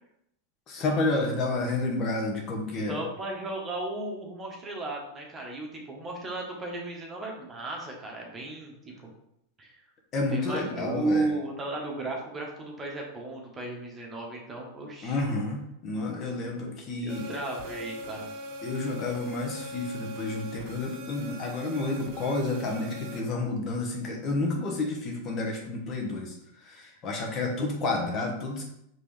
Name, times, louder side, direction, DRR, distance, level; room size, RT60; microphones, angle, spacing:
voice 1, 0.7-3.0 10.1-11.3 15.0-17.3 18.6-26.4 26.6-28.6, left 2 dB, 40° left, 0 dB, 1.1 m, -30 dB
voice 2, 2.9-9.1 9.6-9.8 10.3-15.2 16.6-16.7 17.0-18.3, right 2 dB, 20° right, -1 dB, 1.3 m, -35 dB
sound 1, 17.1-23.2, equal, 50° right, 0.8 m, -41 dB
5.1 x 3.1 x 3.3 m, 0.78 s
hypercardioid pair, 100°, 0 cm